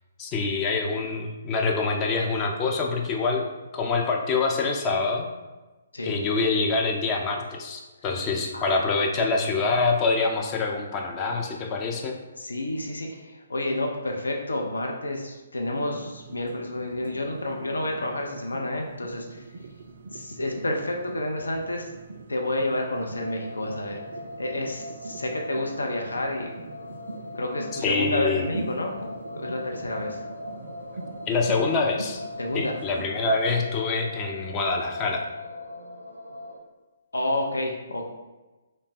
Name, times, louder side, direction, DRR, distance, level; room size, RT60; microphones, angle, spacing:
voice 1, 0.2-3.4 3.7-5.3 6.0-12.2 27.8-28.4 31.3-32.2 32.5-35.2, left 4 dB, 25° left, 1 dB, 0.4 m, -25 dB
voice 2, 8.5-8.9 9.2-9.3 12.4-19.4 20.1-21.9 22.3-24.0 24.4-26.5 27.3-30.2 32.4-32.7 37.1-38.0, left 1 dB, 75° left, 1 dB, 0.5 m, -30 dB
sound 1, 15.7-33.7, right 3 dB, 60° right, 0.3 m, -42 dB
sound 2, 22.9-36.6, left 2 dB, 90° right, 0.7 m, -40 dB
3.2 x 2.1 x 4.0 m, 1.2 s
figure-of-eight pair, 130°, 0 cm